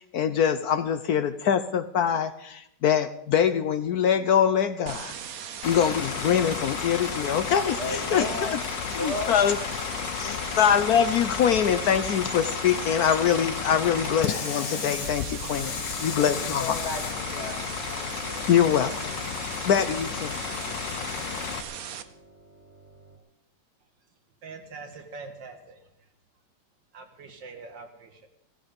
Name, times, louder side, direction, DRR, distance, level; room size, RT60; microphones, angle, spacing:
voice 1, 0.0-5.1 5.6-8.2 8.9-9.6 10.2-15.7 16.0-16.8 18.5-19.1 19.6-20.4, left 8 dB, 65° left, 11 dB, 1.1 m, -24 dB
sound 1, 4.9-22.0, right 8 dB, 60° right, 1.3 m, -39 dB
Bus / Idling, 5.6-21.6, left 10 dB, 80° left, 1.5 m, -33 dB
voice 2, 7.8-8.6 9.0-9.5 10.2-10.4 16.2-17.6 17.9-18.5, left 2 dB, 40° left, 2 dB, 2.8 m, -34 dB
sound 2, 13.3-23.2, right 2 dB, 40° right, 2.6 m, -47 dB
voice 3, 24.4-25.8 26.9-28.3, right 4 dB, 90° right, 5 dB, 2.5 m, -43 dB
16.5 x 14.0 x 5.2 m, 0.76 s
omnidirectional pair, 1.9 m